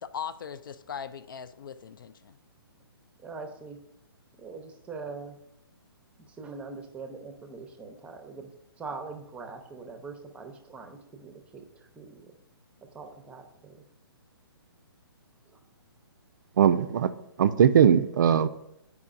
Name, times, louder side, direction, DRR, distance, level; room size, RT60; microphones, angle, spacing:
voice 1, 0.0-2.3, left 7 dB, 55° left, 13 dB, 0.4 m, -39 dB
voice 2, 3.2-3.8 4.4-5.4 6.3-8.5 8.8-12.3 12.8-13.8 15.5-15.6, right 4 dB, 10° right, 5 dB, 0.7 m, -42 dB
voice 3, 16.6-17.1 17.4-18.5, right 8 dB, 50° right, 11 dB, 0.4 m, -20 dB
9.5 x 4.8 x 2.5 m, 0.80 s
figure-of-eight pair, 130°, 13 cm